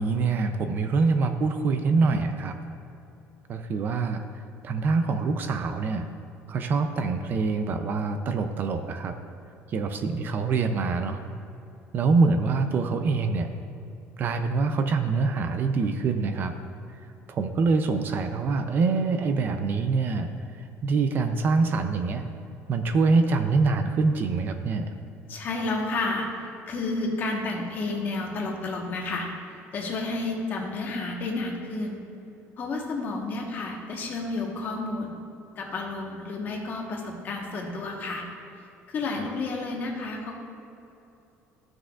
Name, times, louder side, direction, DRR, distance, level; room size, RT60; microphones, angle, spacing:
voice 1, 0.0-2.5 3.5-4.2 4.6-6.1 6.5-9.1 9.7-11.2 11.9-13.5 14.2-16.5 17.3-20.3 20.8-22.3 22.7-24.9 39.2-39.3, right 4 dB, 40° right, 7 dB, 0.4 m, -25 dB
voice 2, 25.3-26.3 26.7-29.3 29.7-32.0 32.6-35.1 35.6-38.2 38.9-40.3, left 3 dB, 40° left, 0 dB, 1.2 m, -31 dB
13.5 x 6.1 x 2.4 m, 2.8 s
cardioid pair, 155°, 5 cm